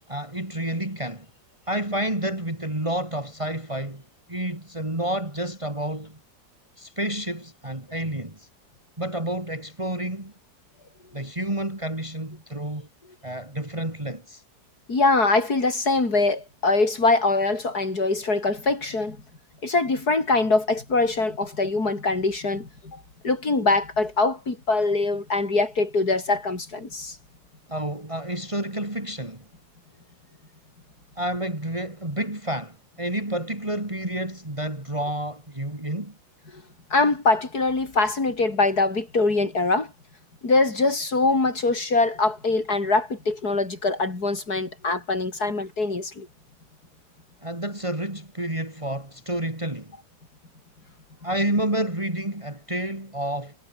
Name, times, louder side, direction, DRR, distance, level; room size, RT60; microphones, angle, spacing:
voice 1, 0.1-1.3 1.7-4.0 4.3-6.2 6.8-8.5 9.0-10.3 11.1-12.9 13.2-14.4 27.7-29.4 31.2-36.1 47.4-50.0 51.2-53.6, right 1 dB, 20° right, 3.8 m, -29 dB
voice 2, 14.9-19.2 19.6-27.2 36.5-36.6 36.9-39.9 40.4-46.3, left 3 dB, 70° left, 4.9 m, -23 dB
omnidirectional pair, 1.7 m